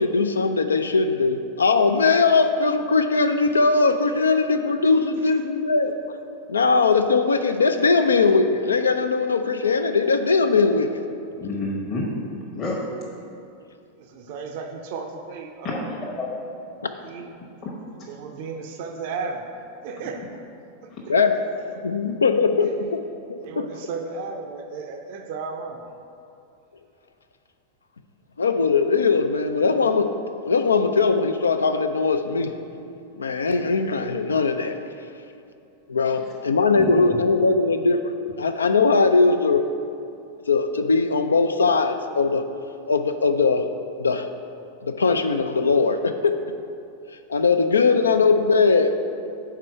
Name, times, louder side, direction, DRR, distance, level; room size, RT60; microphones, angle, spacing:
voice 1, 0.0-5.9 6.5-11.0 16.8-16.9 21.1-21.4 21.8-23.0 23.3-23.7 28.4-30.1 30.4-32.5 33.2-34.8 35.9-38.1 38.4-39.7 40.5-42.4 42.9-43.6 44.0-44.3 44.8-46.4 47.3-48.9, left 4 dB, 75° left, 8 dB, 0.3 m, -20 dB
voice 2, 11.4-12.1 12.5-12.8 15.6-16.3 17.6-17.7 22.0-22.1 36.8-37.2, left 2 dB, 30° left, -5 dB, 1.0 m, -29 dB
voice 3, 14.0-15.9 16.8-17.3 18.1-19.4 19.8-20.3 21.1-21.3 23.4-25.8, right 4 dB, 50° right, 4 dB, 0.5 m, -34 dB
4.7 x 4.5 x 5.6 m, 2.6 s
figure-of-eight pair, 90°, 0 cm